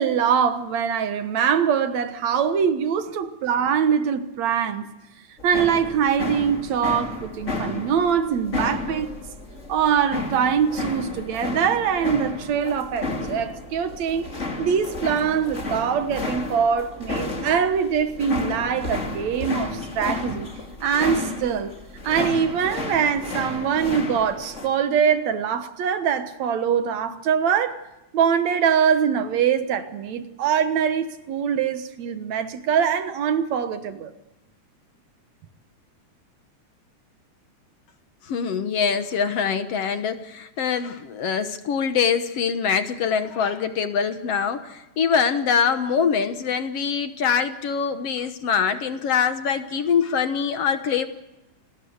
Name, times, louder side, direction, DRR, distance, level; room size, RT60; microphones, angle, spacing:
voice 1, 0.0-4.9 5.4-9.1 9.7-14.3 14.6-20.5 20.8-21.8 22.0-27.8 28.1-34.1, right 7 dB, 70° right, 2.5 m, -23 dB
sound 1, 5.4-24.7, left 3 dB, 25° left, 2.7 m, -32 dB
voice 2, 38.2-51.1, left 7 dB, 60° left, 2.1 m, -24 dB
28.0 x 20.0 x 8.0 m
omnidirectional pair, 3.4 m